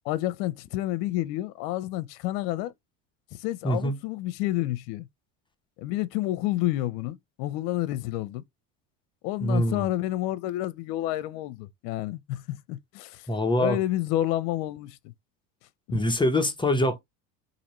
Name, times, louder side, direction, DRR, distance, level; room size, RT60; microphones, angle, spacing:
voice 1, 0.1-2.7 3.4-5.1 5.8-8.4 9.2-13.3 13.6-15.1 15.9-16.0, left 15 dB, 70° left, 0.7 m, -29 dB
voice 2, 3.6-4.0 9.4-9.9 13.3-13.8 15.9-17.0, left 1 dB, 10° left, 0.6 m, -24 dB
4.1 x 2.6 x 3.0 m
supercardioid pair, 115°, 48 cm